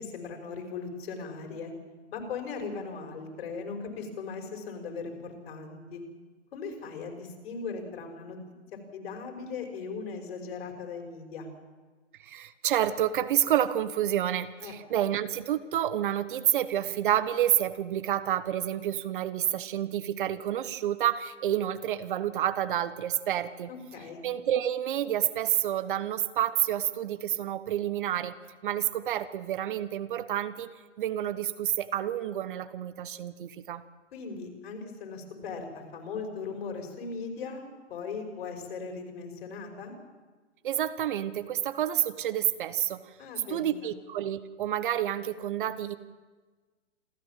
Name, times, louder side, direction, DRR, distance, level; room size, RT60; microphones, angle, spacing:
voice 1, 0.0-1.7 2.1-6.0 6.5-8.4 8.9-11.5 14.6-14.7 23.7-24.2 34.1-39.9 43.2-43.9, left 5 dB, 55° left, 4 dB, 5.5 m, -38 dB
voice 2, 12.2-23.7 24.2-28.3 28.6-30.7 31.0-33.8 40.6-43.1 43.5-46.0, right 11 dB, 45° right, 13 dB, 1.1 m, -29 dB
27.5 x 13.5 x 7.5 m, 1.3 s
hypercardioid pair, 135°, 36 cm